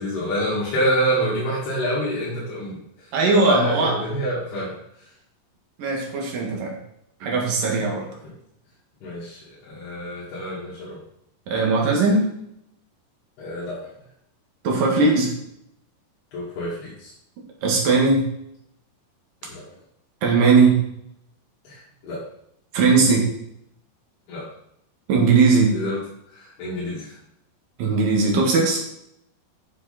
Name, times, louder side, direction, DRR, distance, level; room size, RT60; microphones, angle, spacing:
voice 1, 0.0-4.7 7.7-8.0 8.2-8.3 9.0-11.0 13.4-13.8 16.3-17.1 19.4-19.6 21.6-22.2 24.3-24.5 25.7-26.0 26.3-27.2, equal, 75° left, -8 dB, 4.3 m, -27 dB
voice 2, 3.1-3.9 5.8-6.8 7.2-8.0 11.5-12.2 14.6-15.3 17.6-18.3 20.2-20.8 22.7-23.3 25.1-25.7 27.8-28.8, right 4 dB, 60° right, -1 dB, 3.3 m, -18 dB
9.8 x 6.4 x 4.2 m, 0.75 s
omnidirectional pair, 4.6 m